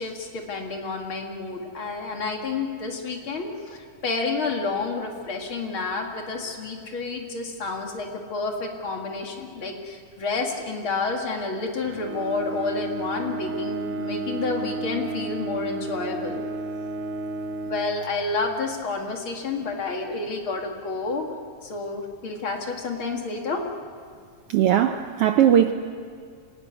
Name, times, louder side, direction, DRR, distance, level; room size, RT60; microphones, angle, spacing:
voice 1, 0.0-16.4 17.7-21.2 21.6-23.6, left 3 dB, 45° left, 2 dB, 2.6 m, -30 dB
Bowed string instrument, 11.8-18.5, right 3 dB, 60° right, 2.3 m, -32 dB
voice 2, 24.5-25.7, right 10 dB, 75° right, 7 dB, 1.3 m, -19 dB
26.0 x 17.0 x 9.6 m, 2.2 s
omnidirectional pair, 3.5 m